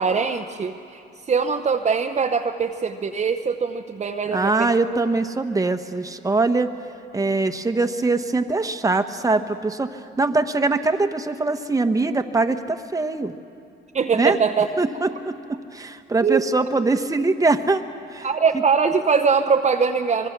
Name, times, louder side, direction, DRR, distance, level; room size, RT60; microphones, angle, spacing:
voice 1, 0.0-4.7 13.9-14.7 16.2-16.4 18.2-20.3, right 5 dB, 35° right, 6 dB, 0.8 m, -22 dB
voice 2, 4.3-6.7 7.1-13.3 14.1-14.4 14.8-17.8 18.1-18.3, right 3 dB, 15° right, 8 dB, 1.1 m, -22 dB
24.5 x 22.0 x 6.0 m, 2.5 s
cardioid pair, 90°, 20 cm